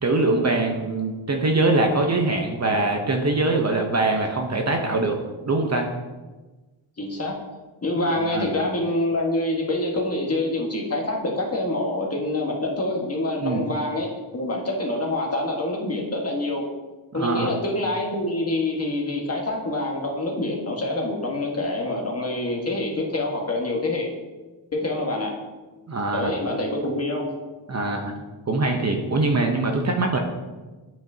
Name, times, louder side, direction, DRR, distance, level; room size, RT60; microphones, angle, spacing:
voice 1, 0.0-5.2 5.4-5.9 8.2-8.5 13.4-13.6 17.1-17.5 25.9-26.3 27.7-28.2 28.5-30.2, right 2 dB, 35° right, 2 dB, 0.7 m, -23 dB
voice 2, 7.0-7.4 7.8-16.7 17.1-24.1 24.7-25.3 26.1-27.3, left 2 dB, 30° left, -1 dB, 1.4 m, -26 dB
8.9 x 5.2 x 2.7 m, 1.2 s
cardioid pair, 90°, 49 cm